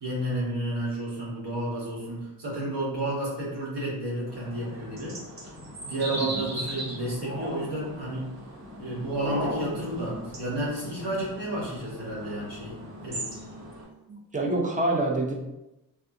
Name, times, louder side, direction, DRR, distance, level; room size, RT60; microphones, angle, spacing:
voice 1, 0.0-5.2 5.8-8.3 8.8-13.3, right 1 dB, 75° right, -4 dB, 1.3 m, -31 dB
sound 1, 4.3-13.8, right 1 dB, 40° right, 0.9 m, -38 dB
voice 2, 14.1-15.3, right 2 dB, 20° right, -1 dB, 0.5 m, -27 dB
3.3 x 2.4 x 2.6 m, 0.93 s
wide cardioid pair, 130°, 41 cm